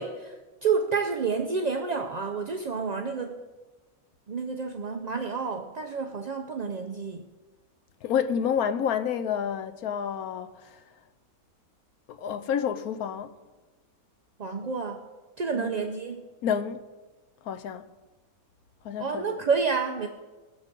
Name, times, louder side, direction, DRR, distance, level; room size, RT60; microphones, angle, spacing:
voice 1, 0.0-3.4 4.3-7.3 14.4-15.0 15.4-16.3 19.0-20.1, right 5 dB, 50° right, 0.5 m, -29 dB
voice 2, 8.0-10.8 12.1-13.4 15.5-15.7 16.4-16.8 17.4-17.8 18.8-19.4, left 8 dB, 90° left, 1.2 m, -29 dB
18.0 x 7.0 x 5.3 m
omnidirectional pair, 1.5 m